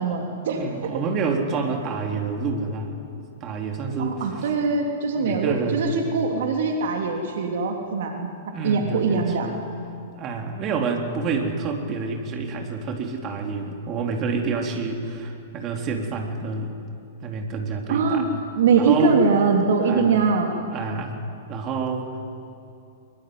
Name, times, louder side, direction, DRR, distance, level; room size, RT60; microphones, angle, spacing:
voice 1, 0.0-0.6 4.0-8.3 8.6-9.5 17.9-18.3 18.5-20.6, right 5 dB, 55° right, 2 dB, 3.0 m, -22 dB
voice 2, 0.6-2.9 3.4-4.2 5.2-5.9 8.5-9.6 10.1-16.7 17.2-18.3 18.8-19.2 19.8-20.4 20.7-21.2 21.5-22.3, right 4 dB, 30° right, 2 dB, 3.9 m, -28 dB
23.5 x 23.0 x 9.6 m, 2.7 s
figure-of-eight pair, 105°, 0 cm